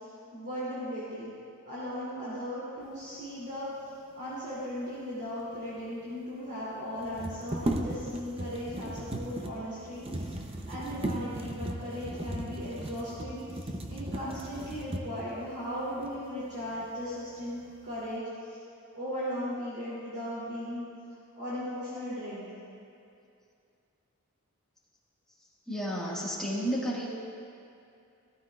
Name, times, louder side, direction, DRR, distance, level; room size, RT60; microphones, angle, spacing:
voice 1, 0.3-1.3 1.6-3.7 4.1-18.6 18.9-20.9 21.3-22.5, equal, 50° right, -10 dB, 2.8 m, -37 dB
sound 1, 5.5-5.6 5.8-5.9 7.0-15.3 16.0-16.1 16.6-17.2 17.6-18.1, right 1 dB, 25° right, 0.6 m, -36 dB
voice 2, 25.7-27.1, equal, 5° left, -6 dB, 1.7 m, -31 dB
15.5 x 13.5 x 2.4 m, 2.5 s
head